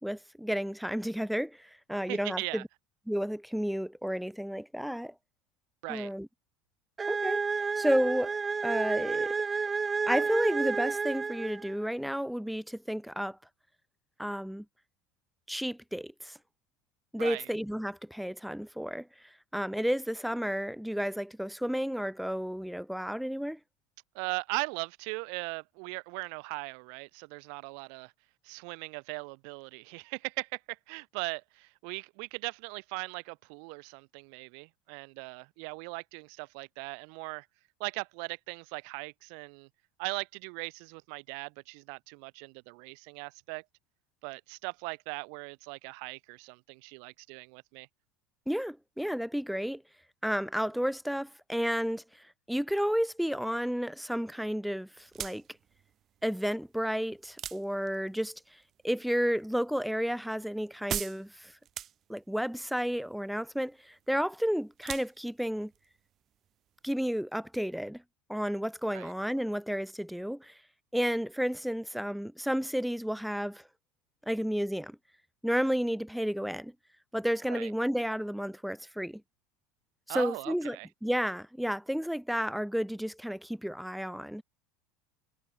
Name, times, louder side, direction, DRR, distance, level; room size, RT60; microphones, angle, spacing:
voice 1, 0.0-2.7 3.1-5.1 5.9-6.3 7.1-7.4 7.8-8.4 8.6-9.4 10.1-13.4 14.2-14.7 15.5-16.4 17.1-23.6 48.5-49.8 50.2-55.4 56.2-58.6 58.8-61.5 62.1-65.7 66.8-68.0 68.3-70.6 70.9-73.6 74.2-75.0 75.4-76.7 77.1-79.2 80.1-80.8 81.0-84.4, equal, ahead, 1.9 m, -32 dB
voice 2, 2.1-2.6 5.8-6.1 17.2-17.5 24.1-28.1 28.4-37.5 37.8-39.7 40.0-43.6 44.2-47.9 68.9-69.1 77.5-77.7 80.1-80.9, right 40 dB or more, 70° right, 3.7 m, -39 dB
sound 1, 7.0-11.9, right 5 dB, 25° right, 0.7 m, -31 dB
sound 2, 55.0-67.0, right 10 dB, 45° right, 5.9 m, -44 dB
hypercardioid pair, 90°, 0 cm